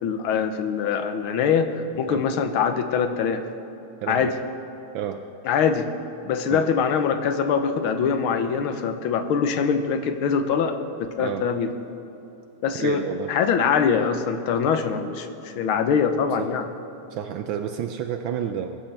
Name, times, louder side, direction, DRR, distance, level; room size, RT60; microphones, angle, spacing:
voice 1, 0.0-3.4 4.1-4.3 5.4-5.9 6.3-11.7 12.6-13.0 13.3-16.7, left 6 dB, 75° left, 8 dB, 1.6 m, -23 dB
voice 2, 4.0-4.3 4.9-5.2 6.5-6.7 11.2-11.5 12.8-13.3 16.4-16.5 17.1-18.8, right 9 dB, 75° right, 7 dB, 1.2 m, -30 dB
21.0 x 12.0 x 3.4 m, 3.0 s
omnidirectional pair, 2.4 m